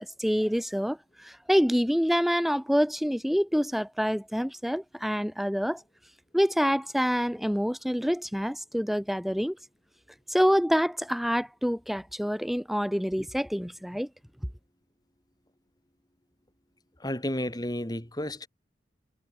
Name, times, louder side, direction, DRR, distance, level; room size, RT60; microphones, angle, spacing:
voice 1, 0.2-5.8 6.3-9.6 10.3-14.1, equal, ahead, 3.0 m, -26 dB
voice 2, 17.0-18.5, left 1 dB, 20° left, 3.2 m, -32 dB
head